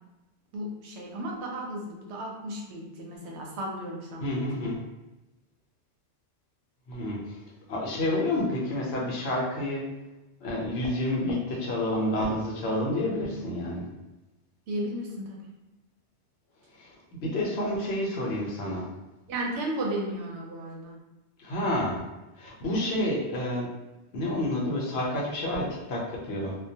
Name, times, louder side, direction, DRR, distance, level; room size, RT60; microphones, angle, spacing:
voice 1, 0.5-4.7 14.7-15.4 19.3-21.0 22.6-23.0, right 1 dB, 85° right, -1 dB, 0.9 m, -34 dB
voice 2, 4.2-4.8 6.9-7.4 7.7-9.8 10.4-13.9 16.8-16.9 17.2-18.9 21.4-22.0 22.4-23.7 24.1-26.6, left 1 dB, 70° left, -3 dB, 0.9 m, -29 dB
2.2 x 2.2 x 2.7 m, 1.0 s
omnidirectional pair, 1.1 m